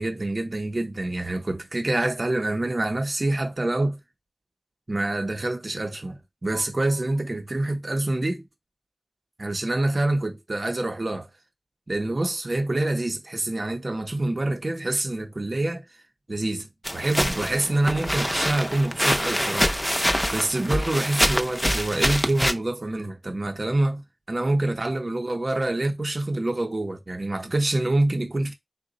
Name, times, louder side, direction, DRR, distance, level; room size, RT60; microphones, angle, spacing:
voice 1, 0.0-4.0 4.9-8.4 9.4-11.3 11.9-15.8 16.3-19.7 20.3-28.5, right 2 dB, 65° right, 0.6 m, -26 dB
sound 1, 16.8-22.5, equal, ahead, 0.5 m, -25 dB
3.9 x 2.1 x 3.8 m
wide cardioid pair, 55°, 0 cm